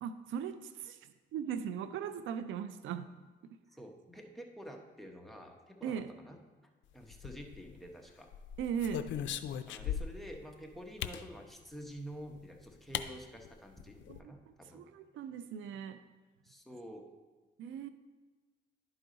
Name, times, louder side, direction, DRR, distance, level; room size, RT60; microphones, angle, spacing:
voice 1, 0.0-3.1 3.4-3.6 5.8-6.1 8.6-9.1 14.1-16.0 17.6-17.9, right 8 dB, 75° right, 11 dB, 0.4 m, -39 dB
voice 2, 3.7-6.4 6.9-8.3 9.7-14.8 16.4-17.1, equal, ahead, 2 dB, 1.1 m, -48 dB
sound 1, 7.1-7.8 8.3-10.3 11.0-11.3 12.4-12.5 12.9-13.1 13.4-13.5 13.8-14.2, left 9 dB, 70° left, 0.4 m, -38 dB
11.0 x 4.8 x 3.9 m, 1.3 s
cardioid pair, 90°, 20 cm